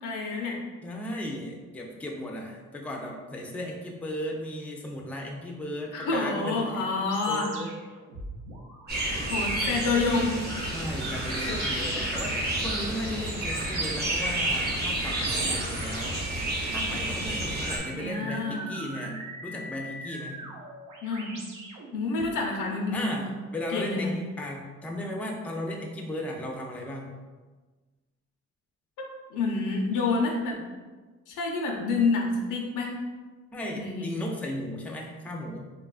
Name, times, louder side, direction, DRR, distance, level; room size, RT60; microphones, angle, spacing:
voice 1, 0.0-0.6 5.9-7.5 9.3-10.4 11.5-11.6 17.9-18.7 21.0-21.4 21.9-23.1 23.7-24.1 29.0-30.6 31.3-32.9 33.8-34.1, left 3 dB, 90° left, 0 dB, 0.6 m, -28 dB
voice 2, 0.8-7.7 10.6-16.2 16.7-20.4 22.9-27.1 33.5-35.7, left 1 dB, 5° left, 0 dB, 0.3 m, -36 dB
sound 1, 7.0-22.3, right 2 dB, 90° right, 0.6 m, -43 dB
sound 2, 8.9-17.8, right 1 dB, 35° right, 0.7 m, -30 dB
2.9 x 2.3 x 2.3 m, 1.3 s
cardioid pair, 90°, 30 cm